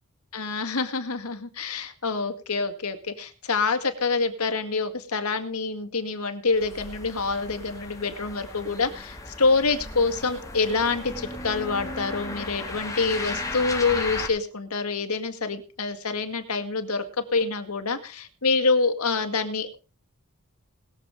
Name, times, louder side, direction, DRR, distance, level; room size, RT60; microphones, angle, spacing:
voice 1, 0.3-17.0 17.3-19.7, left 4 dB, 80° left, 7 dB, 2.0 m, -26 dB
Car Passing Multi A, 6.5-14.3, left 2 dB, 15° left, 2.3 m, -35 dB
21.0 x 7.2 x 5.0 m, 0.35 s
head